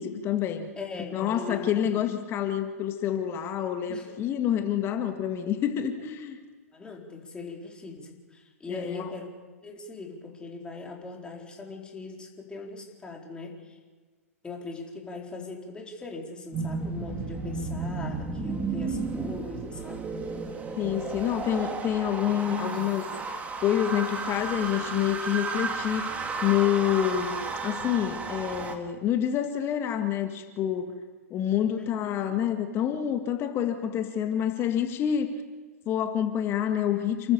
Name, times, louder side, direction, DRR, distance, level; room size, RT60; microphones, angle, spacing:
voice 1, 0.0-0.7 1.0-6.4 8.7-9.1 20.8-23.1 23.6-26.0 26.4-31.0 31.3-35.3 35.9-37.3, left 10 dB, 30° left, 6 dB, 1.9 m, -27 dB
voice 2, 0.8-2.0 3.9-4.1 6.7-9.3 9.6-13.8 14.4-20.1 31.7-32.1, left 3 dB, 10° left, -1 dB, 4.4 m, -40 dB
sound 1, 16.5-28.8, right 4 dB, 15° right, 2.2 m, -33 dB
29.5 x 13.5 x 6.9 m, 1.4 s
figure-of-eight pair, 110°, 8 cm